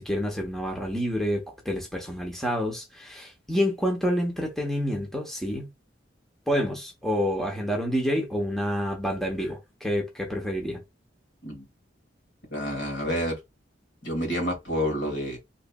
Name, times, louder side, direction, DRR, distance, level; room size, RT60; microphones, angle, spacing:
voice 1, 0.0-5.7 6.5-10.8, equal, ahead, 0.9 m, -28 dB
voice 2, 12.5-13.4 14.0-15.4, equal, 75° left, 2.0 m, -28 dB
4.0 x 3.1 x 2.3 m
head